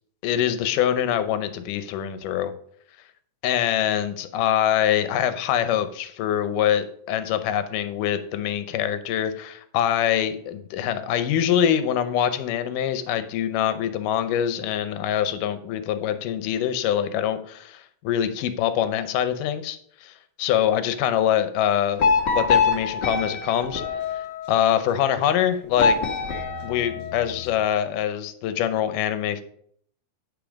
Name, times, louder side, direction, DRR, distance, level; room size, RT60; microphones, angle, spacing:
voice 1, 0.2-2.5 3.4-19.8 20.4-22.1 22.3-23.8 24.5-26.0 26.6-29.4, left 10 dB, 75° left, 11 dB, 2.3 m, -24 dB
sound 1, 22.0-24.7 25.8-27.5, left 4 dB, 55° left, 1.2 m, -24 dB
10.5 x 5.5 x 5.2 m, 0.63 s
omnidirectional pair, 4.0 m